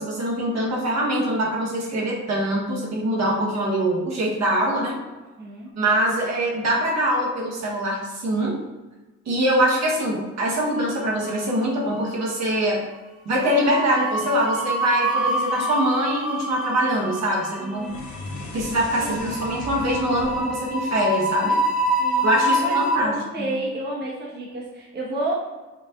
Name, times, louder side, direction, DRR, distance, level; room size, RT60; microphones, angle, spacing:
voice 1, 0.0-5.0 5.8-8.6 9.2-12.8 13.2-17.9 18.5-21.6 22.2-23.5, equal, 60° right, -3 dB, 1.4 m, -23 dB
voice 2, 5.4-5.7 17.6-18.1 18.9-19.3 22.0-25.3, right 1 dB, 35° right, -4 dB, 1.1 m, -31 dB
sound 1, 10.9-11.7 12.0-12.2 13.4-23.0, right 1 dB, 5° right, 1.4 m, -26 dB
sound 2, 17.7-22.1, left 2 dB, 70° left, 0.9 m, -39 dB
5.5 x 2.4 x 3.7 m, 1.2 s
cardioid pair, 90°, 30 cm